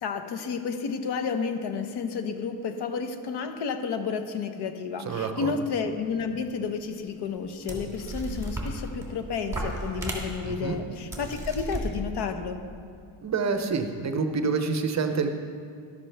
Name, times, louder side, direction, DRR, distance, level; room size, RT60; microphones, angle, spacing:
voice 1, 0.0-12.6, left 5 dB, 55° left, 7 dB, 0.9 m, -31 dB
voice 2, 5.1-5.5 10.4-10.8 13.2-15.3, right 5 dB, 35° right, 7 dB, 0.6 m, -27 dB
sound 1, 6.6-6.7 7.4-7.5 7.7-9.1 9.5-10.6 11.1-11.8, right 2 dB, 5° right, 1.7 m, -34 dB
13.0 x 11.5 x 3.3 m, 2.3 s
cardioid pair, 160°, 47 cm